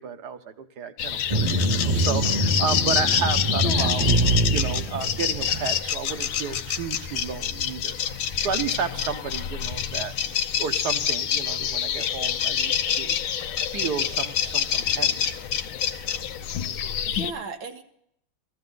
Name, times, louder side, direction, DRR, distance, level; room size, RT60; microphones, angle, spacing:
voice 1, 0.0-4.1 4.4-10.1 10.6-13.2 13.7-15.4, right 6 dB, 60° right, 9 dB, 1.5 m, -32 dB
sound 1, 1.0-17.3, left 9 dB, 85° left, 1.6 m, -27 dB
sound 2, 1.3-5.9, right 1 dB, 25° right, 1.1 m, -24 dB
voice 2, 3.6-4.4 17.0-17.8, right 4 dB, 85° right, 6 dB, 2.2 m, -35 dB
15.0 x 14.5 x 3.9 m, 0.72 s
omnidirectional pair, 2.1 m